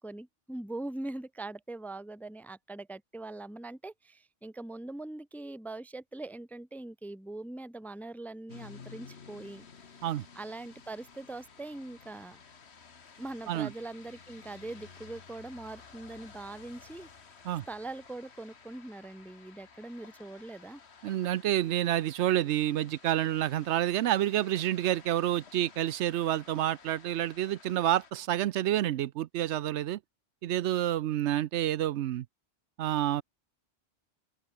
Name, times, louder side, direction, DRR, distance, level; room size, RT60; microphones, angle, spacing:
voice 1, 0.0-9.7 10.3-12.4 13.2-17.1 17.7-20.8, right 2 dB, ahead, 0.6 m, -42 dB
sound 1, 8.5-28.1, left 5 dB, 70° left, 1.8 m, -54 dB
voice 2, 21.0-30.0 30.4-32.2 32.8-33.2, right 12 dB, 80° right, 0.9 m, -28 dB
open air
omnidirectional pair, 1.2 m